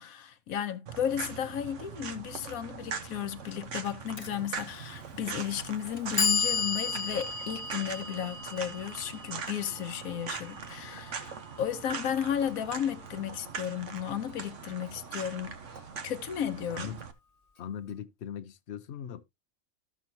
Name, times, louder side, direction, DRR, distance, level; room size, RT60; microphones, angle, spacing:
voice 1, 0.0-15.6 16.0-17.0, left 9 dB, 85° left, 1.2 m, -34 dB
sound 1, 0.9-17.1, right 6 dB, 60° right, 1.3 m, -41 dB
Clock, 4.2-4.3 5.2-5.3 5.9-11.9, left 4 dB, 30° left, 1.2 m, -34 dB
voice 2, 17.6-19.2, left 9 dB, 60° left, 0.9 m, -40 dB
13.5 x 6.1 x 2.7 m
omnidirectional pair, 1.5 m